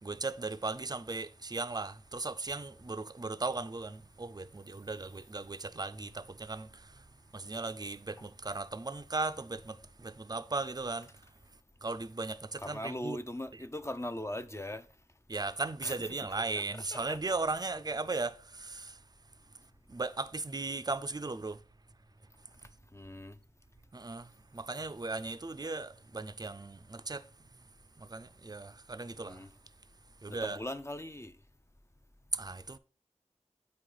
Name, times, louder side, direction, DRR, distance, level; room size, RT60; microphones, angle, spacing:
voice 1, 0.0-6.9 7.3-11.1 11.8-13.2 13.5-13.6 15.3-19.0 19.9-21.6 23.9-27.2 28.0-29.4 30.2-30.6 32.3-32.8, right 3 dB, 30° right, 0.5 m, -37 dB
voice 2, 12.6-14.8 15.8-16.0 16.6-16.7 16.9-17.2 22.9-23.4 29.3-29.5 30.3-31.3, left 1 dB, 20° left, 0.6 m, -40 dB
8.5 x 4.8 x 3.9 m
wide cardioid pair, 50°, 13 cm